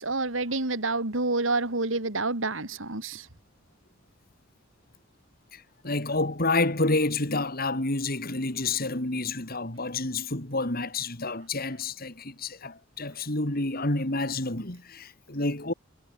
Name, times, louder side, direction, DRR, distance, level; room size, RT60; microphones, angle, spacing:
voice 1, 0.0-3.3, right 3 dB, 85° right, 3.5 m, -28 dB
voice 2, 5.5-15.7, left 2 dB, 50° left, 3.7 m, -29 dB
head